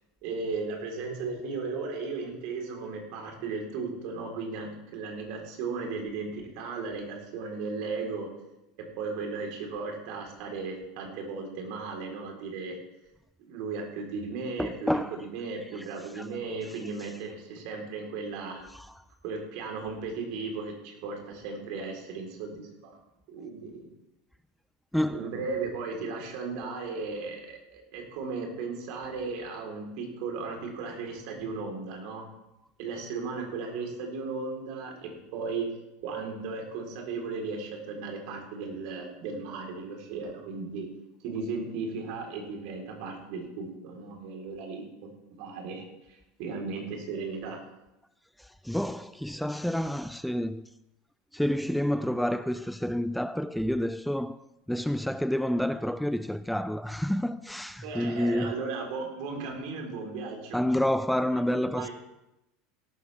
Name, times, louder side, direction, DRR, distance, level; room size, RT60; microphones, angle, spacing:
voice 1, 0.2-8.3 9.0-12.8 13.4-18.6 19.2-23.0 23.3-23.9 25.1-32.3 32.8-35.7 36.0-40.9 41.2-44.8 45.4-47.6 57.8-60.6 61.3-61.9, right 4 dB, 60° right, 3.8 m, -36 dB
voice 2, 14.6-15.2 15.7-15.8 16.2-16.3 18.7-18.9 24.9-25.2 48.4-50.7 51.3-54.4 54.7-58.5 60.5-61.9, left 1 dB, ahead, 0.4 m, -29 dB
17.5 x 12.5 x 3.5 m
hypercardioid pair, 85°, 0 cm